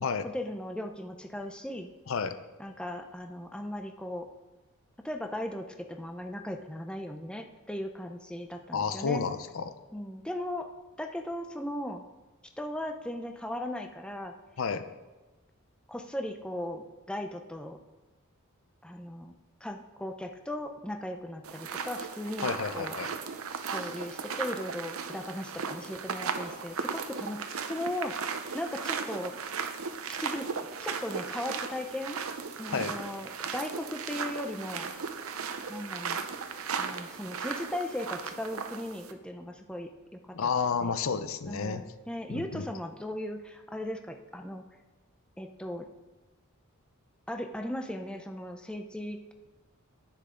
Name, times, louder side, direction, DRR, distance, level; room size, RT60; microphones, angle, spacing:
voice 1, 0.3-1.9 2.6-4.3 5.0-9.2 9.9-10.7 11.0-12.0 12.6-14.3 15.9-17.8 18.8-19.3 19.6-23.0 23.7-29.4 30.1-32.2 32.6-34.9 35.7-36.3 36.8-40.5 40.8-40.9 41.5-44.6 45.4-45.9 47.3-49.3, left 1 dB, 5° left, 5 dB, 0.5 m, -37 dB
voice 2, 8.7-9.7 14.6-14.8 22.4-23.1 32.7-32.9 40.3-41.8 42.3-42.7, left 5 dB, 65° left, 11 dB, 0.6 m, -31 dB
sound 1, 21.4-39.1, right 5 dB, 75° right, 0.7 m, -36 dB
10.0 x 9.0 x 3.7 m, 1.2 s
head